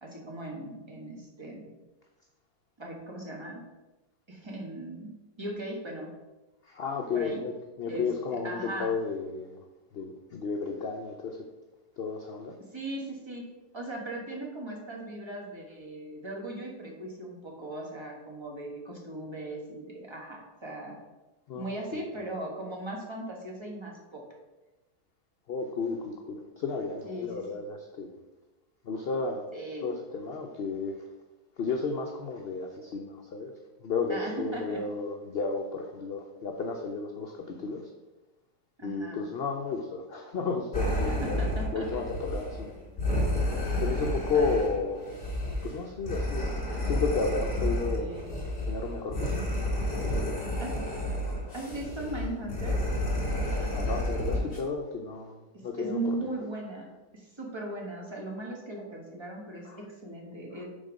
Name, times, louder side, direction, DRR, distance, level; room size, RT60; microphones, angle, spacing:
voice 1, 0.0-1.7 2.8-3.6 4.3-5.1 5.4-6.1 7.1-7.4 7.9-8.1 8.4-8.9 12.7-13.5 13.7-21.0 21.5-24.2 27.0-27.4 29.5-29.9 34.1-34.8 38.8-39.2 41.1-42.0 42.3-42.4 44.3-44.7 47.9-48.3 50.6-50.9 51.5-52.8 55.8-60.6, right 1 dB, 20° right, -1 dB, 1.0 m, -38 dB
voice 2, 6.7-7.5 7.8-9.6 9.9-11.4 12.0-12.5 21.5-22.0 25.5-28.1 28.8-29.5 29.8-31.0 31.6-33.5 33.8-37.8 38.8-42.8 43.8-45.2 45.6-46.6 46.8-48.1 48.7-49.4 49.9-50.5 51.2-51.5 53.7-55.4 55.6-56.5 59.7-59.8 60.5-60.6, left 4 dB, 80° left, 3 dB, 0.5 m, -33 dB
sound 1, 40.7-54.6, left 1 dB, 30° left, 1.9 m, -31 dB
5.1 x 4.0 x 5.1 m, 1.1 s
omnidirectional pair, 1.7 m